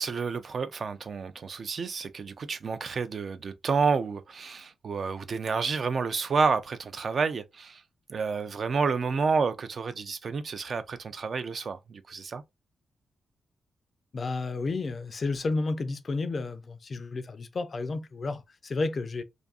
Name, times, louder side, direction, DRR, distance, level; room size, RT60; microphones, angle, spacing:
voice 1, 0.0-7.8 8.1-12.4, right 5 dB, 50° right, 0.3 m, -29 dB
voice 2, 14.1-19.2, left 3 dB, 40° left, 0.3 m, -31 dB
2.6 x 2.4 x 2.3 m
wide cardioid pair, 115°, 0 cm